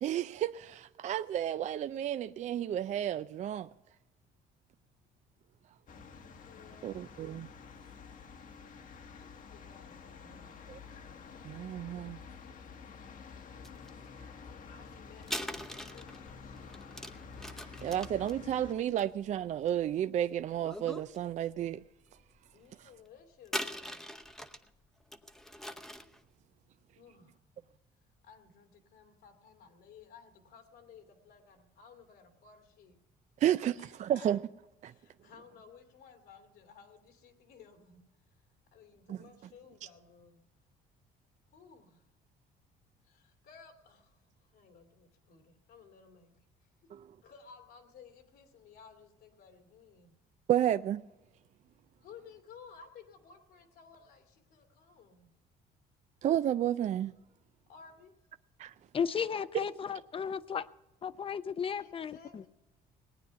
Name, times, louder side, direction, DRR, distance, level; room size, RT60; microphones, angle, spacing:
voice 1, 0.0-3.7 6.8-7.5 10.7-10.8 11.4-12.2 17.6-21.8 22.8-22.9 33.4-34.4 34.8-34.9 39.1-39.2 46.9-47.1 50.5-51.0 56.2-57.1 58.6-58.7, right 11 dB, 45° right, 0.4 m, -32 dB
sound 1, 5.9-18.7, left 5 dB, 50° left, 1.2 m, -49 dB
voice 2, 6.4-7.1 9.0-10.5 14.6-16.8 22.5-24.0 26.9-27.4 28.2-32.9 33.8-34.3 34.8-38.3 38.7-40.4 41.5-42.1 43.0-46.3 46.6-46.9 47.2-50.2 52.0-55.3 57.7-58.1 61.8-62.5, left 6 dB, 80° left, 2.5 m, -57 dB
sound 2, 13.6-13.9 15.2-20.0 20.6-21.2 21.6-21.7 23.4-24.7 25.1-26.2, equal, ahead, 0.8 m, -41 dB
voice 3, 58.9-60.7 61.0-62.4, left 7 dB, 30° left, 0.6 m, -34 dB
19.0 x 9.3 x 5.7 m
cardioid pair, 110°, 17 cm